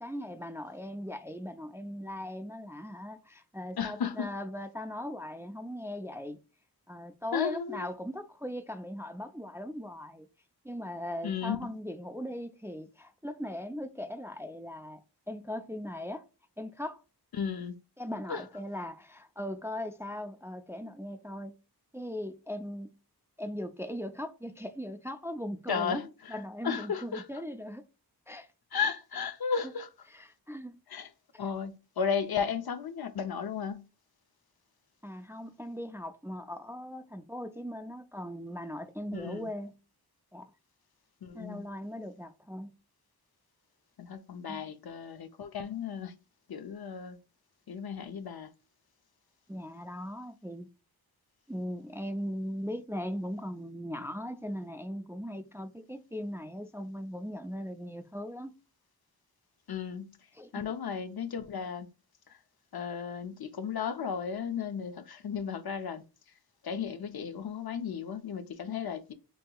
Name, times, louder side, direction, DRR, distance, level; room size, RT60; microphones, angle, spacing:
voice 1, 0.0-6.4 6.9-10.3 10.6-15.0 15.3-16.2 16.6-17.0 18.0-21.6 21.9-22.9 23.4-26.0 26.3-27.8 28.3-28.5 30.1-30.8 31.3-31.4 35.0-39.7 40.3-40.5 41.3-42.7 44.3-44.7 49.5-50.7 51.5-58.5 60.3-60.7, equal, 5° right, 0.4 m, -39 dB
voice 2, 3.8-4.3 7.3-7.9 11.2-11.7 17.4-17.7 18.3-18.4 25.7-26.1 26.6-27.2 28.7-29.9 30.9-31.1 31.4-33.9 39.1-39.5 41.2-41.6 44.0-46.1 46.5-47.2 47.7-48.5 59.7-60.2 60.5-61.9 62.3-62.4 62.7-66.0 66.6-69.1, left 7 dB, 65° left, 0.6 m, -34 dB
5.5 x 2.8 x 2.3 m
wide cardioid pair, 65°, 41 cm